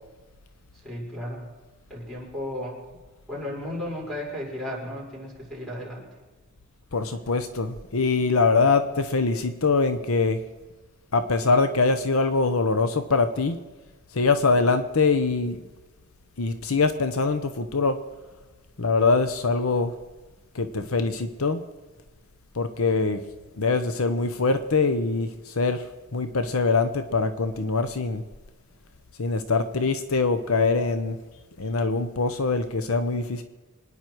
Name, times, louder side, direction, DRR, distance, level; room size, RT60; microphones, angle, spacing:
voice 1, 0.7-1.5 1.9-2.8 3.3-6.1, left 1 dB, ahead, -5 dB, 5.8 m, -34 dB
voice 2, 6.9-10.4 11.1-13.6 14.1-15.6 16.4-18.0 18.8-19.9 20.5-21.6 22.6-23.2 23.6-25.8 26.1-28.2 29.2-31.2 31.6-33.4, left 4 dB, 70° left, 9 dB, 0.9 m, -23 dB
25.5 x 10.0 x 4.6 m, 1.3 s
head